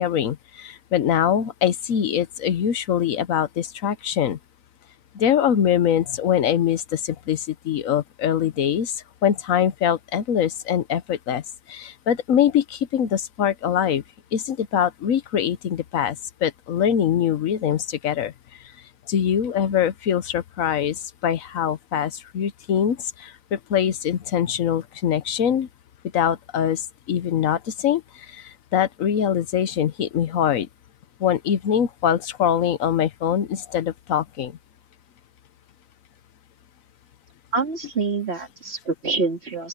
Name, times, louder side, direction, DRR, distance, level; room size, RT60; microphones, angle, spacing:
voice 1, 0.0-4.4 5.1-11.4 11.7-14.0 14.3-16.2 16.4-18.3 19.1-25.7 26.1-26.8 27.1-30.7 31.2-34.5, left 9 dB, 75° left, 1.3 m, -23 dB
voice 2, 37.5-39.7, right 4 dB, 50° right, 2.6 m, -26 dB
open air
omnidirectional pair, 1.4 m